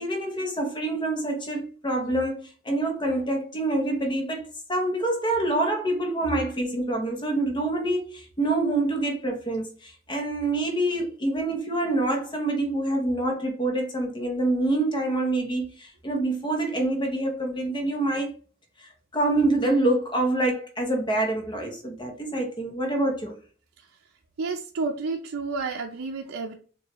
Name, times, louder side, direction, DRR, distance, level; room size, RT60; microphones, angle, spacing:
voice 1, 0.0-18.3 18.8-23.4, right 2 dB, 25° left, 0.7 m, -26 dB
voice 2, 24.4-26.5, right 4 dB, 80° right, 0.5 m, -30 dB
6.9 x 2.3 x 3.0 m
head